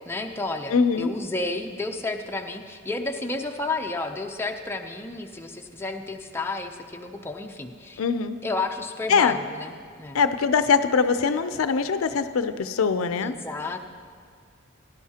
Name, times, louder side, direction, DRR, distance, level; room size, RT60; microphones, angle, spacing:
voice 1, 0.1-8.0 8.4-10.2 13.2-13.8, left 3 dB, 10° left, 4 dB, 0.5 m, -31 dB
voice 2, 0.7-1.1 8.0-8.4 9.1-9.4 10.1-13.4, left 5 dB, 85° left, 11 dB, 0.5 m, -22 dB
17.0 x 10.5 x 2.8 m, 2.1 s
head